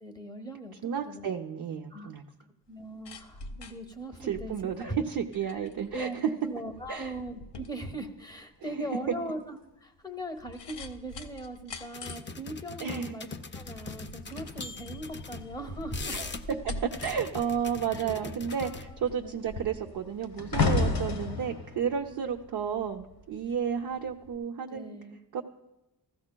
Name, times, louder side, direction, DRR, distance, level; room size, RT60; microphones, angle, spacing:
voice 1, 0.0-1.3 1.9-2.1 2.7-5.0 5.5-5.6 5.9-6.2 6.4-13.3 13.5-16.2 17.9-18.2 18.6-19.4 22.1-22.3 24.7-25.2, right 1 dB, 10° left, 6 dB, 0.8 m, -40 dB
voice 2, 0.8-2.2 4.2-6.3 6.9-7.1 8.6-8.7 9.1-9.2 12.8-13.1 16.1-25.0 25.3-25.4, right 7 dB, 60° right, 2 dB, 0.6 m, -32 dB
sound 1, 2.7-20.3 20.6-20.7, left 2 dB, 90° left, 0.9 m, -47 dB
sound 2, 11.9-15.5 15.8-16.6 16.9-18.9, left 4 dB, 30° left, 0.4 m, -41 dB
sound 3, 14.3-17.0 17.3-17.7 18.0-23.3 24.1-24.3, left 3 dB, 65° left, 1.1 m, -33 dB
15.5 x 14.0 x 2.2 m, 1.0 s
wide cardioid pair, 165°, 40 cm